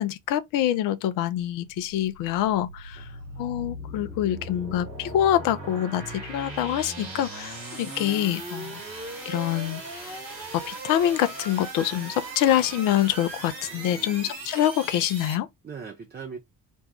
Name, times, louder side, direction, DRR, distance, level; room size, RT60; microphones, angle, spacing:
voice 1, 0.0-3.1 3.4-8.8 9.3-10.1 10.5-15.5, left 12 dB, 45° left, 0.5 m, -25 dB
sound 1, 1.3-15.3, right 2 dB, 90° right, 0.9 m, -38 dB
voice 2, 3.0-4.3 4.6-4.8 6.8-7.1 13.7-14.4 15.6-16.4, right 6 dB, 20° right, 0.6 m, -44 dB
2.6 x 2.3 x 3.4 m
figure-of-eight pair, 45°, 49 cm